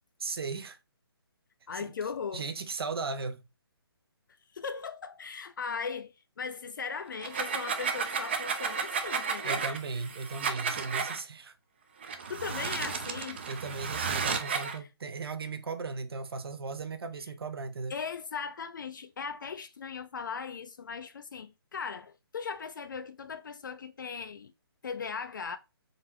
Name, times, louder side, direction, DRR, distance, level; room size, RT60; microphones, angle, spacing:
voice 1, 0.2-0.8 1.7-1.9 2.3-3.5 9.4-11.5 13.5-17.9, right 4 dB, 70° right, 0.7 m, -37 dB
voice 2, 1.7-2.5 4.5-9.6 12.3-13.4 17.9-24.5 24.8-25.6, left 6 dB, 50° left, 0.4 m, -38 dB
sound 1, 7.1-11.2 12.0-14.8, right 6 dB, 25° right, 0.4 m, -33 dB
4.0 x 3.5 x 2.8 m
hypercardioid pair, 165°, 13 cm